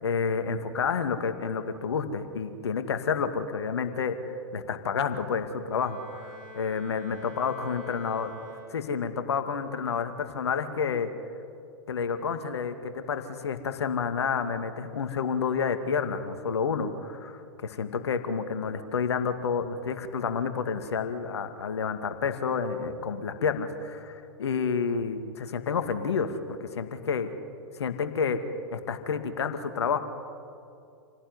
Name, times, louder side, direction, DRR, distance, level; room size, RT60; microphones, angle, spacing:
voice 1, 0.0-4.2 4.5-6.3 6.6-8.3 8.7-11.1 11.9-27.3 27.8-28.4 28.7-30.0, left 6 dB, 70° left, 7 dB, 2.3 m, -29 dB
Bowed string instrument, 5.7-9.2, equal, 30° right, 6.0 m, -47 dB
28.5 x 18.0 x 9.8 m, 2.5 s
figure-of-eight pair, 105°, 14 cm